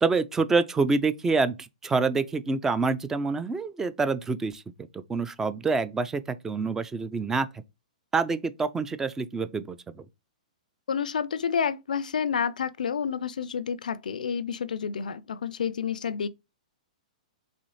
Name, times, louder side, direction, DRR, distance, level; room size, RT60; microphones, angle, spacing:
voice 1, 0.0-4.6 4.9-7.5 8.1-9.9, right 4 dB, 10° right, 0.3 m, -26 dB
voice 2, 10.9-16.3, left 7 dB, 90° left, 0.3 m, -29 dB
3.9 x 3.1 x 3.1 m
hypercardioid pair, 140°, 4 cm